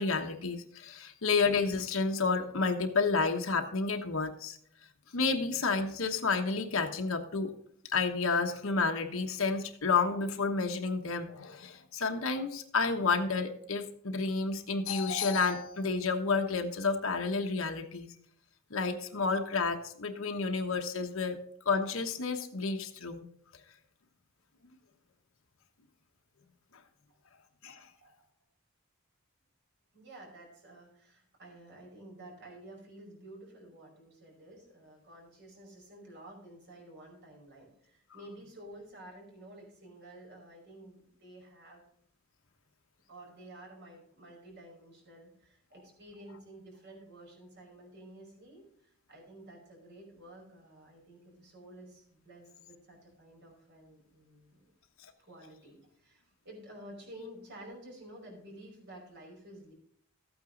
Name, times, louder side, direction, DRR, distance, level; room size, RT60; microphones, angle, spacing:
voice 1, 0.0-4.6 5.1-7.5 7.9-18.1 18.7-21.4 21.6-23.2 27.6-27.9, left 4 dB, 75° left, 4 dB, 1.3 m, -30 dB
voice 2, 29.9-41.8 43.1-54.7 55.2-59.7, right 1 dB, 55° right, -1 dB, 5.3 m, -51 dB
14.0 x 8.9 x 3.9 m, 0.65 s
head